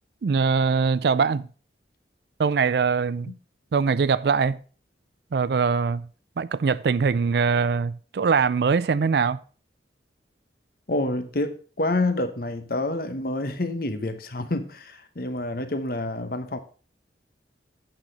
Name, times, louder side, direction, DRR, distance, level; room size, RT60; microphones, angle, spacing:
voice 1, 0.2-1.5 2.4-3.3 3.7-4.6 5.3-6.1 6.4-9.4, right 5 dB, 60° right, 0.4 m, -22 dB
voice 2, 10.9-16.6, left 2 dB, 50° left, 1.0 m, -28 dB
8.9 x 5.9 x 5.2 m
head